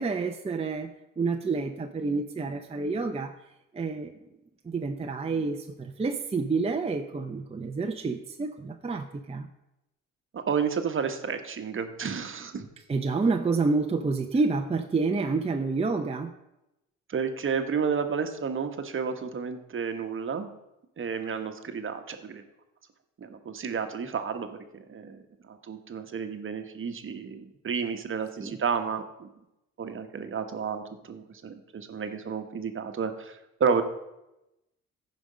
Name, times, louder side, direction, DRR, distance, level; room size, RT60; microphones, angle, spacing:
voice 1, 0.0-3.3 3.7-4.1 4.6-9.5 12.9-16.3 28.4-28.6, right 4 dB, 20° right, 4 dB, 0.7 m, -29 dB
voice 2, 10.3-12.7 17.1-20.5 21.0-22.4 23.2-25.2 25.5-29.3 29.8-33.8, right 6 dB, 45° right, 8 dB, 1.2 m, -31 dB
14.5 x 5.3 x 5.1 m, 0.91 s
cardioid pair, 90°, 30 cm